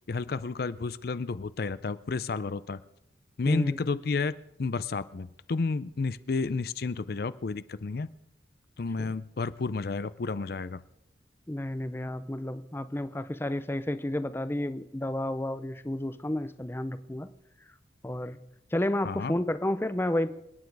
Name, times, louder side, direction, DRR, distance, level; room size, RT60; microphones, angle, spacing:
voice 1, 0.1-2.8 3.4-4.3 4.6-8.1 8.8-10.8 19.0-19.3, left 4 dB, 55° left, 15 dB, 0.5 m, -31 dB
voice 2, 3.5-3.8 9.0-9.1 11.5-17.3 18.0-18.4 18.7-20.3, left 1 dB, 15° left, 12 dB, 0.6 m, -31 dB
27.5 x 9.3 x 4.7 m, 0.88 s
head